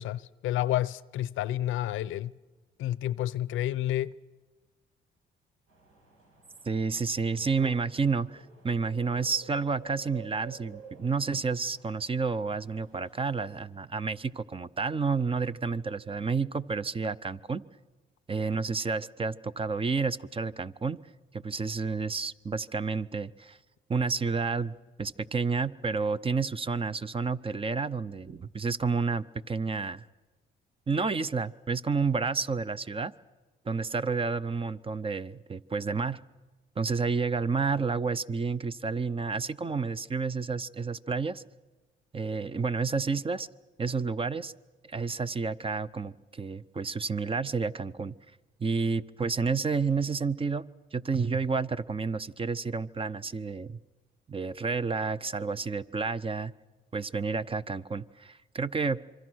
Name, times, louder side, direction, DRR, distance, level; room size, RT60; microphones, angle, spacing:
voice 1, 0.0-2.3 2.8-4.1, left 13 dB, 85° left, 0.7 m, -30 dB
sound 1, 5.7-13.7, right 6 dB, 90° right, 6.8 m, -53 dB
voice 2, 6.6-17.6 18.3-21.0 21.3-23.6 23.9-30.0 30.9-33.1 33.6-36.2 36.8-41.4 42.1-43.5 43.8-44.5 44.8-48.2 48.6-50.7 50.9-53.8 54.3-56.5 56.9-59.0, right 4 dB, 25° right, 0.7 m, -30 dB
26.5 x 24.0 x 6.3 m
cardioid pair, 90°, 20 cm